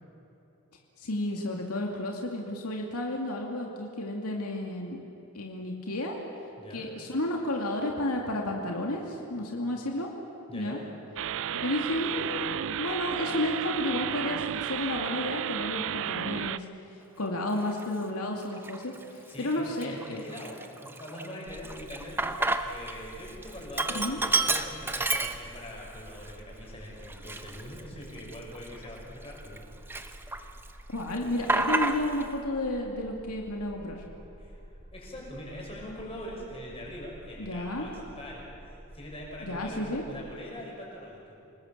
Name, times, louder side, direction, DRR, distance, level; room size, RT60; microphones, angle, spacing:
voice 1, 1.0-5.0 5.3-6.2 6.7-10.1 10.5-10.8 11.5-16.6 17.2-20.2 23.9-24.2 30.9-34.0 37.4-37.9 39.4-40.0, left 1 dB, 85° left, 0 dB, 2.4 m, -32 dB
voice 2, 6.6-6.9 10.5-10.8 19.3-29.6 34.4-34.6 34.9-38.5 38.9-41.4, left 1 dB, 25° left, -2 dB, 6.1 m, -43 dB
sound 1, 11.2-16.6, right 9 dB, 60° right, 0.5 m, -33 dB
Sink (filling or washing), 17.7-17.8 18.5-19.0 19.4-19.5 19.8-22.9 23.2-25.8 26.2-26.3 27.0-29.6 29.9-30.7 30.9-32.3, right 2 dB, 10° right, 0.8 m, -30 dB
sound 2, 21.5-40.4, equal, 45° right, 2.0 m, -49 dB
27.5 x 19.5 x 7.3 m, 2.8 s
head